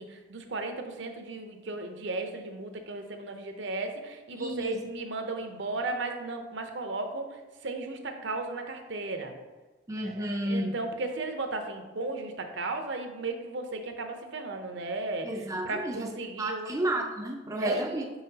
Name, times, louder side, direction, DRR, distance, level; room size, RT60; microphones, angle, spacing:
voice 1, 0.0-7.3 7.6-9.3 10.0-15.3 15.6-16.7 17.6-18.1, right 3 dB, 65° right, 5 dB, 0.7 m, -35 dB
voice 2, 4.4-4.8 9.9-10.8 15.2-16.1 16.4-18.0, right 1 dB, 15° right, 1 dB, 0.4 m, -31 dB
5.9 x 5.6 x 2.8 m, 1.2 s
head